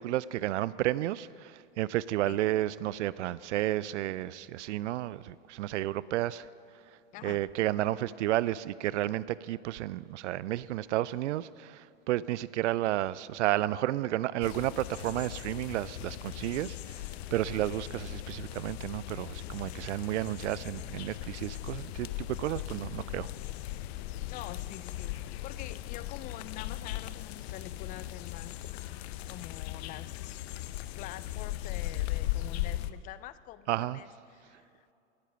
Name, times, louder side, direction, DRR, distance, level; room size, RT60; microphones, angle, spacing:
voice 1, 0.0-6.5 7.2-17.1 17.3-23.3 33.7-34.0, right 14 dB, 75° right, 19 dB, 0.5 m, -32 dB
sound 1, 14.4-32.9, left 15 dB, 60° left, 0.7 m, -38 dB
voice 2, 24.3-28.6 29.3-30.4 30.9-34.9, left 13 dB, 25° left, 16 dB, 0.3 m, -46 dB
18.5 x 8.3 x 5.8 m, 2.7 s
hypercardioid pair, 110°, 36 cm